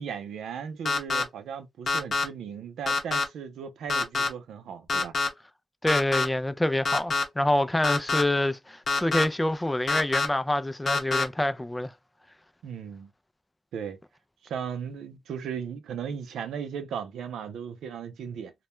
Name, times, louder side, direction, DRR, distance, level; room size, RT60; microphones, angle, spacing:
voice 1, 0.0-5.1 12.6-13.1 13.7-14.0 14.4-18.5, right 7 dB, 90° right, 0.4 m, -36 dB
sound 1, 0.9-1.2 1.9-2.2 2.9-3.2 3.9-4.3 4.9-5.3 5.9-6.3 6.9-7.2 7.8-8.2 8.9-9.2 9.9-10.3 10.9-11.2, left 3 dB, 55° left, 0.7 m, -25 dB
voice 2, 5.8-11.9, left 1 dB, 15° left, 0.3 m, -26 dB
2.1 x 2.1 x 2.9 m
cardioid pair, 65°, 0 cm